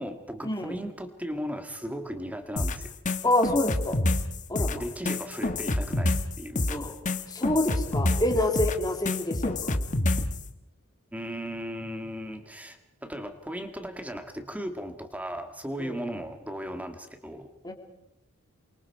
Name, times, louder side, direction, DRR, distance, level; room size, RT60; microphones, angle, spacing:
voice 1, 0.0-2.9 4.7-6.7 11.1-17.5, equal, 5° right, 7 dB, 1.8 m, -36 dB
sound 1, 2.6-10.4, left 2 dB, 35° left, 1.3 m, -27 dB
voice 2, 3.2-4.0 4.5-4.8 6.7-6.9 7.3-9.8 15.8-16.0 17.6-17.7, left 1 dB, 15° left, 4 dB, 2.7 m, -27 dB
28.0 x 24.0 x 4.7 m, 0.85 s
head